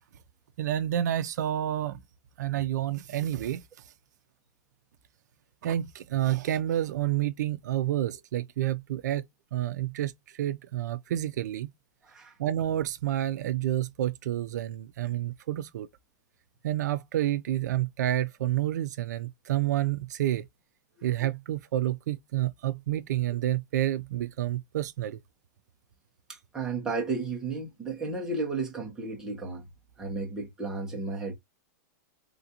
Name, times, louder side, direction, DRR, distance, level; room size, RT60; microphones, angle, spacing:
voice 1, 0.6-2.0 2.4-3.6 5.6-9.2 9.5-11.7 12.4-15.9 16.6-20.5 21.0-25.2, right 12 dB, 70° right, 0.4 m, -29 dB
voice 2, 26.3-29.6 30.0-31.3, right 3 dB, 5° right, 0.8 m, -33 dB
3.3 x 2.5 x 2.8 m
supercardioid pair, 165°, 10 cm